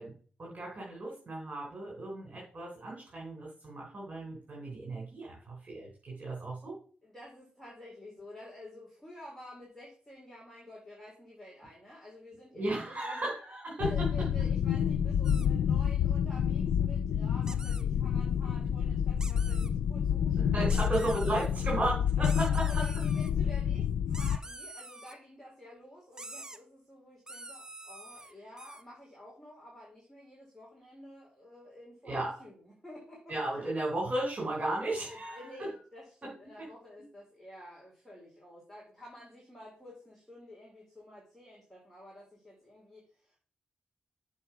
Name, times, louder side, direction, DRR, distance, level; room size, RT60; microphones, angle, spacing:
voice 1, 0.0-6.8 12.5-14.3 19.6-19.7 20.1-22.8 32.0-32.3 33.3-35.7 36.2-36.3 36.6-36.7, right 2 dB, 45° right, -4 dB, 3.8 m, -35 dB
voice 2, 7.0-13.3 13.8-21.1 22.2-33.7 35.1-43.4, left 1 dB, 5° left, -4 dB, 4.0 m, -51 dB
sound 1, 13.8-24.4, left 8 dB, 85° left, 0.4 m, -29 dB
sound 2, 15.2-15.5 17.4-17.8 19.2-19.7 20.7-21.5 22.2-23.3 24.1-25.1 26.1-26.6 27.3-28.8, right 2 dB, 20° right, 1.0 m, -46 dB
7.3 x 4.7 x 5.8 m, 0.42 s
cardioid pair, 65°, 4 cm